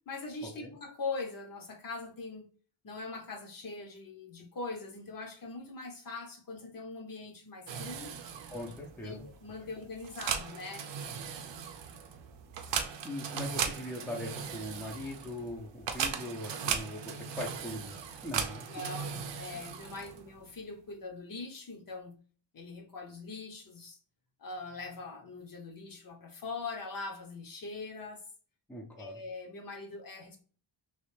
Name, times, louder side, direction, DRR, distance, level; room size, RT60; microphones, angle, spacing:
voice 1, 0.1-2.5 2.8-8.1 8.8-10.9 18.7-22.2 22.5-24.0 24.4-28.2 28.9-30.4, left 3 dB, 50° left, 0.8 m, -42 dB
sound 1, 7.7-20.4, right 7 dB, 70° right, 0.6 m, -38 dB
voice 2, 8.5-9.2 12.7-18.0 18.2-18.7 28.7-29.2, left 1 dB, 5° left, 0.4 m, -41 dB
3.2 x 2.5 x 3.2 m
wide cardioid pair, 160°, 45 cm